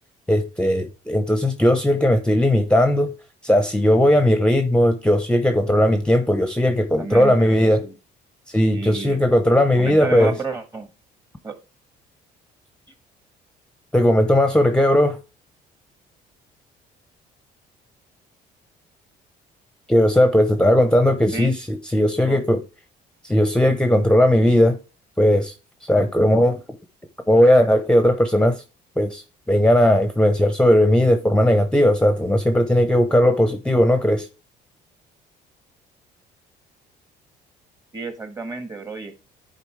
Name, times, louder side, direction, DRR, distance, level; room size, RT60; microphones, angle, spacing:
voice 1, 0.3-3.1 3.4-7.8 8.5-10.3 13.9-15.2 19.9-22.6 23.2-24.8 25.2-25.5 25.9-26.6 27.3-28.5 29.0-34.3, left 1 dB, 5° left, 0.8 m, -17 dB
voice 2, 6.7-8.0 8.7-9.2 9.7-10.9 11.4-11.5 21.3-21.5 22.2-22.4 37.9-39.2, right 3 dB, 20° right, 1.4 m, -31 dB
10.5 x 4.2 x 3.3 m
cardioid pair, 110°, 17 cm